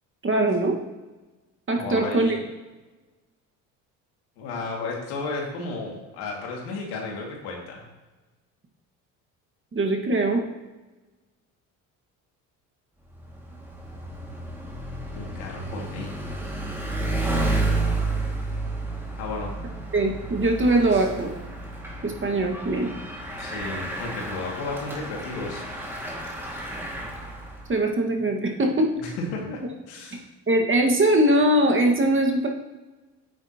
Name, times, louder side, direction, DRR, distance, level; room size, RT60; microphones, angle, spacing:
voice 1, 0.2-0.7 1.7-2.3 9.7-10.4 19.9-21.3 22.0-22.9 27.7-29.1 30.5-32.5, right 1 dB, 30° right, 1 dB, 1.7 m, -21 dB
voice 2, 1.8-2.4 4.4-7.8 15.1-16.1 19.2-19.5 20.9-21.0 23.4-25.6 29.0-29.6 29.9-30.2, left 3 dB, 80° left, -1 dB, 2.3 m, -33 dB
Bicycle, 13.1-27.7, right 2 dB, 5° right, 2.2 m, -31 dB
9.1 x 8.7 x 3.0 m, 1.2 s
supercardioid pair, 70°, 38 cm